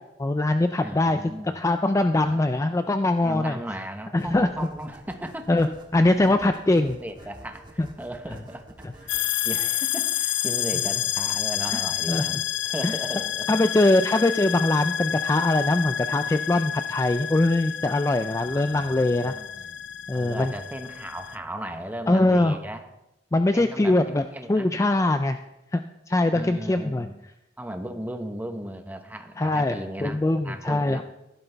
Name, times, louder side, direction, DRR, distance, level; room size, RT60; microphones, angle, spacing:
voice 1, 0.2-3.6 4.1-4.7 5.5-7.0 7.8-7.9 11.7-11.8 12.1-12.4 12.8-12.9 13.5-19.3 20.1-20.5 22.1-22.6 23.3-25.4 25.7-25.8 26.1-27.1 29.4-31.0, left 2 dB, 15° left, 8 dB, 0.4 m, -22 dB
voice 2, 0.8-1.6 2.2-2.4 3.2-5.6 6.2-6.4 6.7-9.1 9.4-12.4 12.6-13.5 18.3-19.8 20.1-22.8 23.5-24.7 26.3-27.1 27.6-31.0, right 1 dB, 10° right, 6 dB, 0.9 m, -36 dB
sound 1, 4.2-12.7, equal, 25° right, 1.6 m, -49 dB
sound 2, 9.1-21.4, left 11 dB, 80° left, 0.5 m, -29 dB
15.0 x 12.0 x 3.4 m, 0.91 s
head